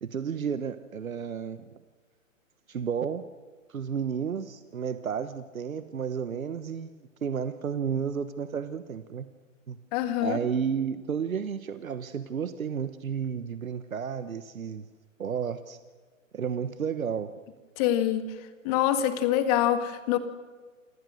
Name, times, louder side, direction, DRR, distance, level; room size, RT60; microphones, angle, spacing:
voice 1, 0.0-1.7 2.7-3.3 3.7-9.3 9.7-9.8 10.2-14.9 15.2-15.8 16.3-17.3, right 7 dB, 90° right, 12 dB, 1.3 m, -32 dB
voice 2, 9.9-10.4 17.8-18.2 18.6-20.2, left 11 dB, 30° left, 9 dB, 1.9 m, -25 dB
28.5 x 19.5 x 6.5 m, 1.5 s
hypercardioid pair, 145°, 40 cm